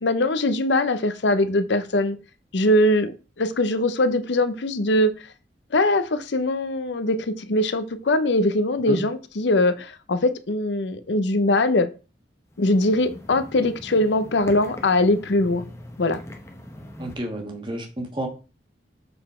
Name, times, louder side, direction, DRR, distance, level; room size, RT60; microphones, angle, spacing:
voice 1, 0.0-2.2 2.5-3.1 3.4-5.1 5.7-11.9 12.6-15.7 16.0-16.2, left 1 dB, 75° left, 0.7 m, -21 dB
sound 1, 12.5-17.1, left 1 dB, 15° left, 0.8 m, -41 dB
voice 2, 17.0-18.3, right 1 dB, 25° right, 1.3 m, -30 dB
6.7 x 4.1 x 4.3 m
head